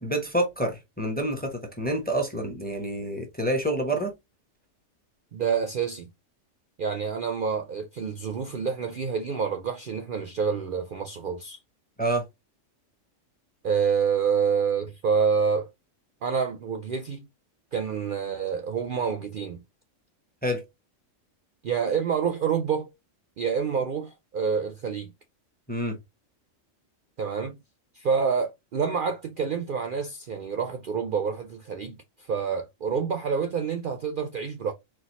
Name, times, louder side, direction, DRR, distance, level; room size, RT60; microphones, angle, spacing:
voice 1, 0.0-4.1 12.0-12.3 20.4-20.6 25.7-26.0, right 1 dB, 10° left, 0.7 m, -28 dB
voice 2, 5.3-6.1 6.8-11.6 13.6-15.7 16.2-17.3 17.7-19.6 21.6-22.9 23.4-25.1 27.2-27.6 27.9-34.7, right 6 dB, 55° right, 0.6 m, -27 dB
4.5 x 2.3 x 4.1 m
omnidirectional pair, 1.3 m